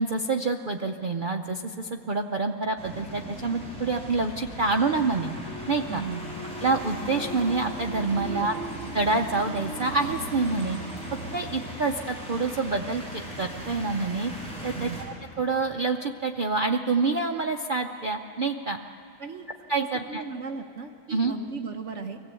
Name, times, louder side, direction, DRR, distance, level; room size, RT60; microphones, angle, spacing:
voice 1, 0.0-5.3 5.7-6.0 6.6-8.5 8.9-10.8 11.3-14.3 14.6-18.8 19.7-20.2 21.1-21.3, right 3 dB, 90° right, 4 dB, 0.4 m, -27 dB
sound 1, 2.8-15.0, right 1 dB, 5° left, 4.3 m, -37 dB
voice 2, 5.9-6.3 8.2-8.5 14.7-15.0 19.2-19.5 20.1-22.2, right 5 dB, 50° right, 5 dB, 1.1 m, -36 dB
24.5 x 16.0 x 8.3 m, 2.6 s
omnidirectional pair, 1.8 m